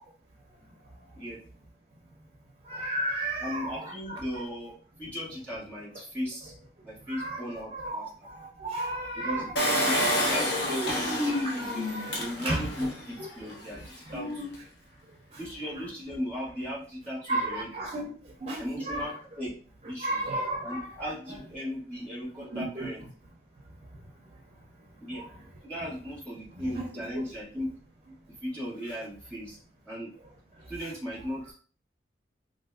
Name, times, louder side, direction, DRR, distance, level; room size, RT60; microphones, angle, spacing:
voice 1, 2.7-4.2 7.1-8.0 8.2-9.8 11.3-12.7 13.2-13.3 14.1-14.5 17.3-18.1 18.4-19.1 20.0-20.9 22.5-22.9 25.1-25.3 26.6-26.9, right 1 dB, 35° right, 0 dB, 0.4 m, -33 dB
voice 2, 3.4-4.7 5.0-6.5 6.8-8.3 9.1-9.4 9.8-14.4 15.4-17.7 18.6-19.5 19.8-20.2 20.6-23.0 25.0-25.2 25.6-27.7 28.4-29.6 29.8-30.1 30.7-31.5, equal, 10° left, -7 dB, 1.6 m, -37 dB
Engine, 9.6-13.0 13.5-13.6 13.8-13.9, left 1 dB, 75° left, 0.8 m, -28 dB
3.4 x 2.6 x 2.3 m, 0.40 s
head